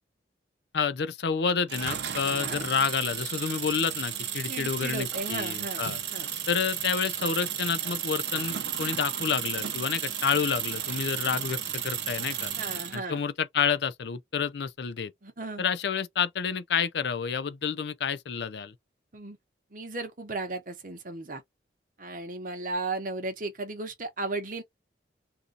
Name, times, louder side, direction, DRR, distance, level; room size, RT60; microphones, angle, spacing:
voice 1, 0.7-6.0 6.5-12.5 12.9-15.1 15.6-18.7, left 6 dB, 60° left, 0.4 m, -29 dB
sound 1, 1.7-13.0, right 9 dB, 65° right, 0.6 m, -33 dB
voice 2, 2.2-2.7 4.5-6.3 12.5-13.2 15.2-15.7 19.1-19.4 19.7-21.4 22.0-24.6, right 2 dB, 45° right, 0.9 m, -35 dB
2.7 x 2.5 x 3.8 m
head